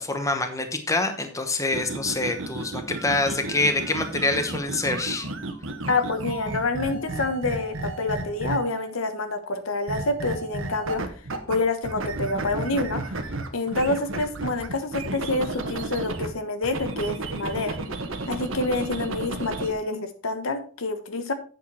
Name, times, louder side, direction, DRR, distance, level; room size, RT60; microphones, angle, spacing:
voice 1, 0.0-5.3, left 2 dB, 15° left, 6 dB, 0.9 m, -26 dB
sound 1, 1.7-8.9 9.9-11.6 11.8-16.3 16.6-19.7, right 2 dB, 65° right, 1.3 m, -33 dB
voice 2, 5.9-11.0 11.5-13.2 13.5-17.8 18.3-21.3, left 2 dB, 70° left, 9 dB, 1.1 m, -27 dB
8.4 x 6.7 x 4.3 m, 0.41 s
head